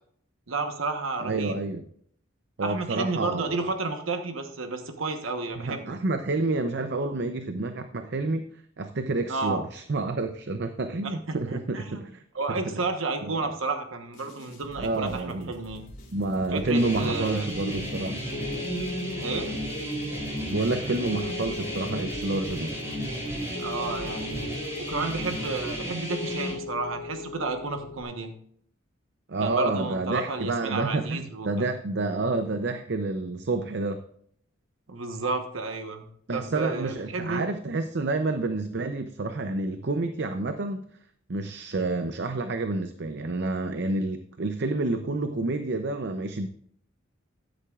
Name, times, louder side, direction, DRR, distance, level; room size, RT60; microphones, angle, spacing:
voice 1, 0.5-1.6 2.6-6.0 9.3-9.6 11.0-12.0 12.3-15.9 16.5-17.5 19.2-19.5 23.6-28.3 29.4-31.7 34.9-37.5, right 3 dB, 85° right, 5 dB, 1.2 m, -32 dB
voice 2, 1.2-1.8 2.6-3.7 5.6-8.5 8.8-12.2 12.5-12.8 13.2-13.5 14.8-15.5 16.1-18.2 20.5-22.7 29.3-34.0 36.3-40.8 41.3-46.5, right 2 dB, 55° right, 8 dB, 0.6 m, -29 dB
sound 1, 14.1-26.2, equal, 40° left, 4.0 m, -47 dB
sound 2, 16.7-26.5, right 1 dB, 15° right, 4.3 m, -34 dB
Piano, 17.7-28.0, left 4 dB, 60° left, 0.8 m, -39 dB
13.0 x 10.0 x 2.4 m, 0.63 s
head